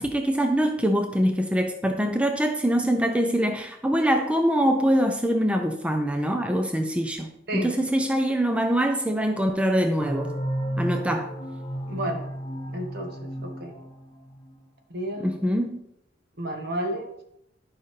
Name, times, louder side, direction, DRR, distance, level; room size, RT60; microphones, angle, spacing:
voice 1, 0.0-10.4 10.8-11.3 15.2-15.8, equal, 5° right, 4 dB, 0.5 m, -24 dB
sound 1, 10.0-14.5, equal, 25° left, 1.9 m, -32 dB
voice 2, 11.9-12.2 12.7-13.7 14.9-15.3 16.4-17.2, right 1 dB, 60° right, 3 dB, 1.5 m, -31 dB
11.5 x 5.6 x 3.3 m, 0.77 s
head